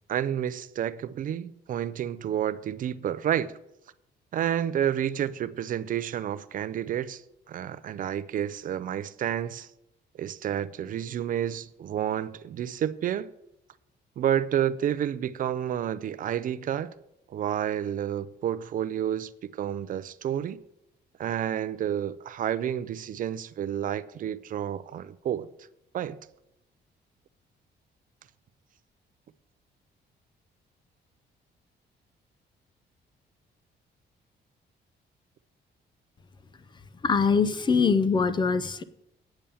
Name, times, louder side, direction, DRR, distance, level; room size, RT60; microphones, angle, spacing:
voice 1, 0.1-3.6 4.3-7.2 7.5-9.7 10.2-13.3 14.2-16.9 17.3-20.6 21.2-25.5 25.9-26.2, right 10 dB, 50° right, 0.4 m, -30 dB
voice 2, 37.0-38.8, left 5 dB, 25° left, 0.5 m, -23 dB
8.9 x 7.0 x 7.0 m
cardioid pair, 160°, 18 cm